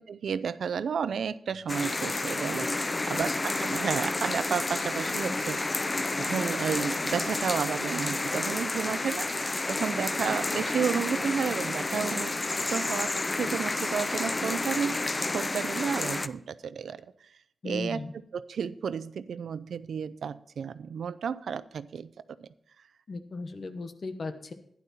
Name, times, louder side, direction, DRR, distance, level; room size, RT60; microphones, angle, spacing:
voice 1, 0.1-5.6 6.2-12.4 12.7-17.3 17.6-18.0 18.3-22.1 22.4-22.5, right 7 dB, 90° right, 16 dB, 0.5 m, -32 dB
sound 1, 1.7-16.3, left 2 dB, 20° left, 0.4 m, -30 dB
voice 2, 2.8-3.4 17.6-18.1 23.1-24.5, left 3 dB, 40° left, 8 dB, 1.1 m, -37 dB
12.0 x 11.0 x 4.2 m, 0.68 s
wide cardioid pair, 175°, 0 cm